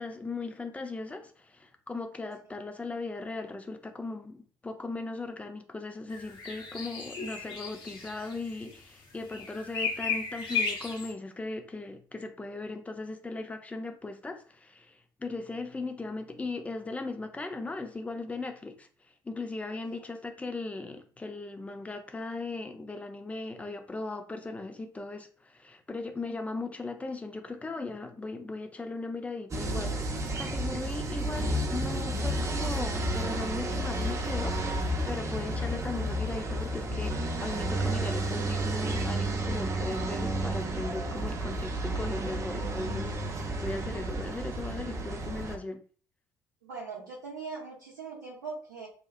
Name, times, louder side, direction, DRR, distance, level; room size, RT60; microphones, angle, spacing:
voice 1, 0.0-45.8, left 3 dB, 15° left, 0.5 m, -38 dB
sound 1, 6.1-8.8 9.1-11.1, left 5 dB, 50° left, 0.7 m, -35 dB
sound 2, 29.5-45.6, right 1 dB, 30° right, 0.6 m, -31 dB
voice 2, 46.6-48.9, right 4 dB, 75° right, 0.7 m, -41 dB
2.9 x 2.3 x 2.4 m
figure-of-eight pair, 50°, 10 cm